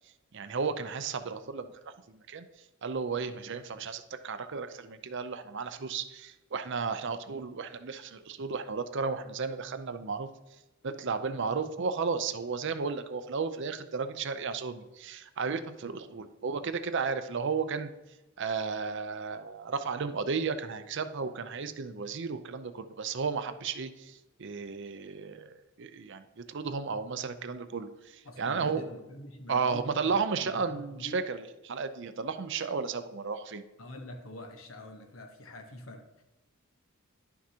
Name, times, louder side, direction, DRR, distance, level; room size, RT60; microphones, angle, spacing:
voice 1, 0.3-2.5 2.8-10.3 10.8-17.9 18.4-28.9 29.5-33.6, right 5 dB, 60° right, 10 dB, 0.6 m, -34 dB
voice 2, 28.2-29.9 30.4-31.2 33.8-36.2, left 1 dB, 70° left, 5 dB, 1.1 m, -46 dB
11.0 x 6.0 x 2.8 m, 1.1 s
head